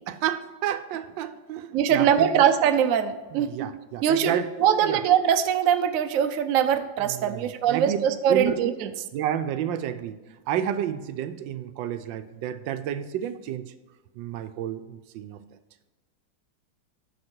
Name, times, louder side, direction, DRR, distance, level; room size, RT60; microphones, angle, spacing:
voice 1, 0.1-2.3 3.3-4.5 4.8-5.0 7.1-8.0 8.3-8.6 9.1-10.2 10.5-13.7 14.2-15.4, right 10 dB, 80° right, 11 dB, 1.3 m, -30 dB
voice 2, 1.7-3.7 4.0-8.9, right 9 dB, 65° right, 8 dB, 0.8 m, -22 dB
9.9 x 6.4 x 4.5 m, 1.2 s
omnidirectional pair, 2.0 m